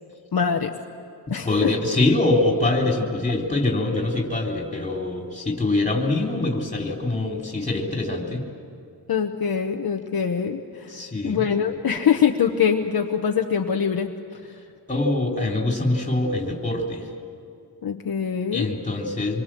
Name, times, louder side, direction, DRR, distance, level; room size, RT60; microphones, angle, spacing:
voice 1, 0.3-0.7 1.3-1.7 9.1-11.0 11.2-14.1 17.8-18.7, left 7 dB, 55° left, 3 dB, 1.1 m, -23 dB
voice 2, 1.4-8.4 10.9-11.4 14.9-17.0 18.5-19.4, left 2 dB, 15° left, 0 dB, 3.3 m, -24 dB
26.5 x 23.5 x 7.6 m, 2.6 s
wide cardioid pair, 175°, 43 cm